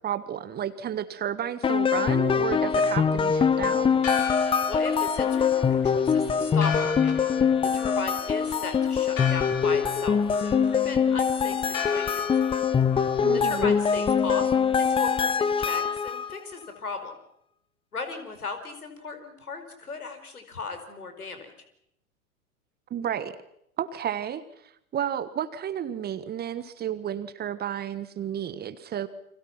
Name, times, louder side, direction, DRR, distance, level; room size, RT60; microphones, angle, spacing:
voice 1, 0.0-4.0 13.2-13.7 22.9-23.3 23.8-24.4 24.9-29.1, right 10 dB, 20° right, 14 dB, 1.4 m, -32 dB
sound 1, 1.6-16.3, left 6 dB, 10° left, 0.9 m, -23 dB
Church bell, 3.8-15.4, left 8 dB, 60° left, 5.3 m, -37 dB
voice 2, 4.7-7.2 7.6-12.2 13.3-17.1 17.9-21.5, left 4 dB, 80° left, 7 dB, 4.9 m, -37 dB
30.0 x 24.5 x 6.0 m, 0.76 s
figure-of-eight pair, 95°, 44 cm